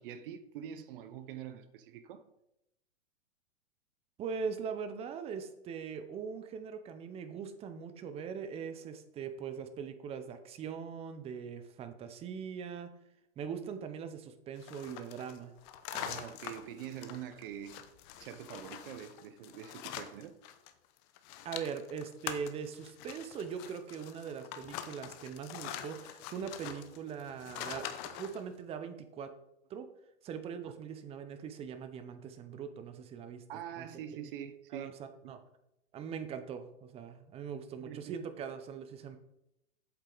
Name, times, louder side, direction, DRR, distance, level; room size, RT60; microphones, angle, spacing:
voice 1, 0.0-2.3 15.9-17.8 18.2-20.4 30.6-30.7 33.5-34.9 35.2-35.4 37.8-38.2, right 9 dB, 50° right, 0.8 m, -45 dB
voice 2, 4.2-12.9 13.4-15.6 21.4-29.3 29.7-29.9 30.2-33.4 33.8-33.9 34.1-34.2 34.7-35.4 35.9-39.2, right 6 dB, 15° right, 0.6 m, -41 dB
sound 1, 14.6-20.7 21.0-28.4, left 10 dB, 35° left, 0.8 m, -44 dB
8.2 x 7.5 x 3.9 m
hypercardioid pair, 140°, 36 cm